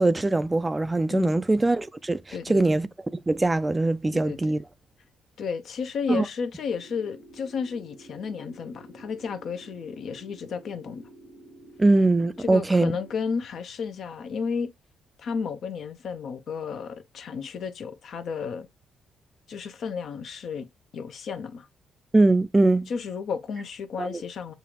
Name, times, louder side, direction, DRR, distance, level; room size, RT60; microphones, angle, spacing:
voice 1, 0.0-2.9 3.3-4.6 6.1-6.2 11.8-12.9 22.1-22.9 24.0-24.2, right 2 dB, 15° right, 0.3 m, -22 dB
voice 2, 5.4-11.0 12.4-14.7 15.2-18.7 19.5-20.7 20.9-21.7 22.9-24.5, left 6 dB, 65° left, 0.7 m, -32 dB
sound 1, 6.6-13.2, right 2 dB, 85° right, 0.9 m, -50 dB
6.7 x 2.5 x 2.9 m
cardioid pair, 90°, 0 cm